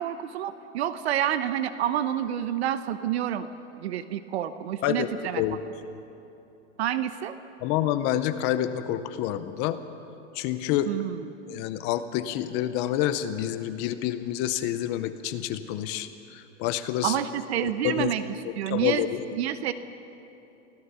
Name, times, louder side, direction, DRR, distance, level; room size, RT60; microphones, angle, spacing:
voice 1, 0.0-3.5 3.8-5.4 6.8-7.3 10.9-11.6 17.0-18.2 18.6-19.1 19.3-19.7, right 11 dB, 55° right, 11 dB, 0.9 m, -28 dB
voice 2, 7.6-9.8 10.3-10.9 11.5-17.2 17.6-18.1 18.4-19.2, left 12 dB, 30° left, 11 dB, 0.7 m, -28 dB
24.0 x 16.5 x 6.9 m, 2.9 s
hypercardioid pair, 150°, 38 cm